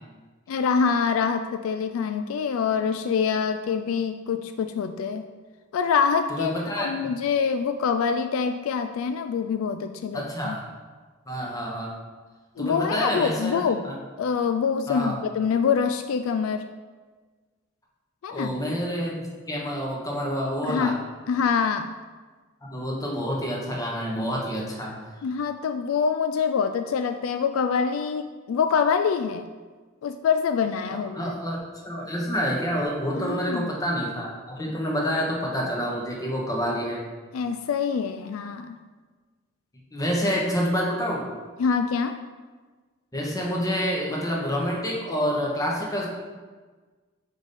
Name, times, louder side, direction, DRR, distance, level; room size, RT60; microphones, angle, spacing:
voice 1, 0.5-5.2 5.7-10.5 12.6-13.8 14.2-16.6 18.2-18.5 20.6-21.0 21.3-21.9 25.2-29.4 30.0-31.3 33.2-33.7 37.3-38.8 41.6-42.2, left 6 dB, 75° left, 9 dB, 0.3 m, -25 dB
voice 2, 6.3-6.9 10.1-10.6 11.3-11.9 12.6-13.9 14.9-15.2 18.3-21.0 22.6-25.0 30.9-37.0 39.9-41.3 43.1-46.1, equal, 15° left, -2 dB, 1.1 m, -28 dB
4.9 x 4.1 x 5.3 m, 1.4 s
head